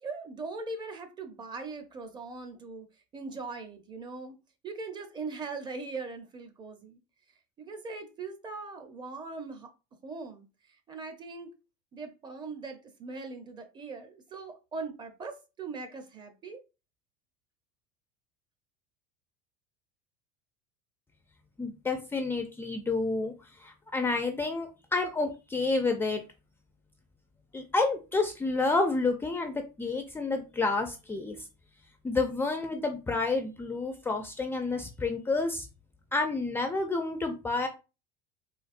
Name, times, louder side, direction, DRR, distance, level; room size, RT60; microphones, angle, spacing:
voice 1, 0.0-2.9 3.1-4.4 4.6-7.0 7.6-9.7 10.0-10.4 10.9-11.5 11.9-16.6, right 3 dB, 25° right, 0.6 m, -40 dB
voice 2, 21.6-23.3 23.6-26.2 27.5-31.4 32.0-35.7 36.1-37.7, left 3 dB, 15° left, 0.4 m, -29 dB
4.0 x 2.4 x 2.5 m
supercardioid pair, 120°, 18 cm